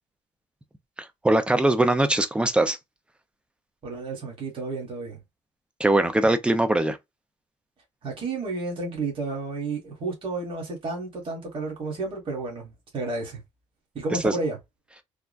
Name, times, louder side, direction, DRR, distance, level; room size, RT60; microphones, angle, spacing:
voice 1, 1.0-2.8 5.8-7.0 14.2-14.3, right 1 dB, 10° right, 0.5 m, -21 dB
voice 2, 3.8-5.2 8.0-13.4 13.9-14.6, right 3 dB, 45° right, 1.6 m, -31 dB
3.6 x 2.1 x 2.3 m
cardioid pair, 105°, 12 cm